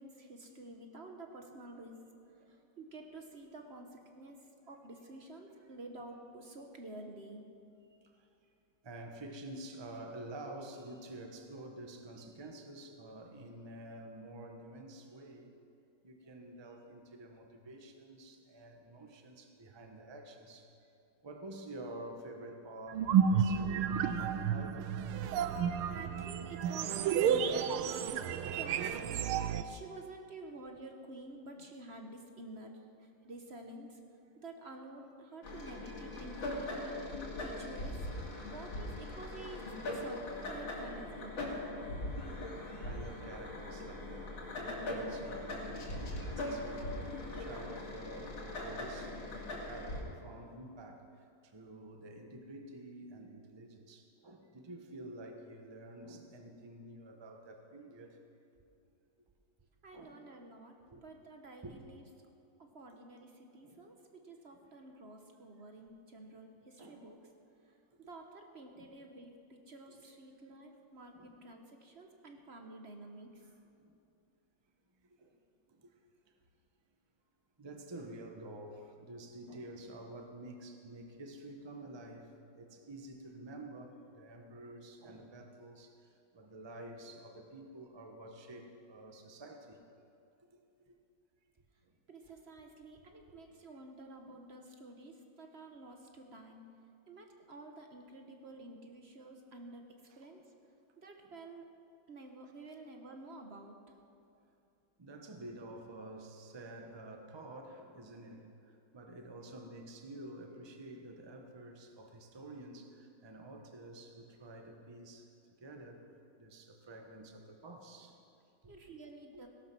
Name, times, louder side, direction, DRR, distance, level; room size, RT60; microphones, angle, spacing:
voice 1, 0.0-1.9 2.5-4.4 4.7-7.4 25.8-28.3 28.5-29.3 29.6-32.7 33.0-34.0 34.4-37.1 37.4-38.0 38.5-40.2 40.5-41.6 59.8-62.0 62.6-63.9 64.2-67.2 67.7-73.4 92.1-96.6 97.1-99.8 100.2-100.4 101.0-101.7 102.1-103.8 118.7-119.5, right 2 dB, 40° right, 4 dB, 1.0 m, -50 dB
voice 2, 2.0-2.6 8.0-8.1 8.8-15.5 16.0-20.7 21.2-24.9 25.7-25.9 28.1-28.6 42.8-51.1 51.4-58.2 59.9-60.2 60.9-61.0 61.6-61.8 63.6-63.8 64.5-64.6 66.8-67.0 68.8-68.9 71.1-71.3 73.4-73.9 75.1-75.4 75.7-75.9 77.6-85.9 86.3-89.8 90.5-90.6 91.8-92.4 93.0-93.4 94.2-94.4 96.3-96.4 100.1-100.3 105.0-108.5 108.9-115.3 115.6-118.2 118.6-118.8, right 1 dB, 20° right, 4 dB, 0.8 m, -49 dB
sound 1, 22.9-29.6, right 7 dB, 85° right, 1.6 m, -31 dB
sound 2, 35.4-50.0, left 1 dB, 65° left, 3.1 m, -40 dB
18.0 x 11.5 x 6.1 m, 2.6 s
omnidirectional pair, 2.3 m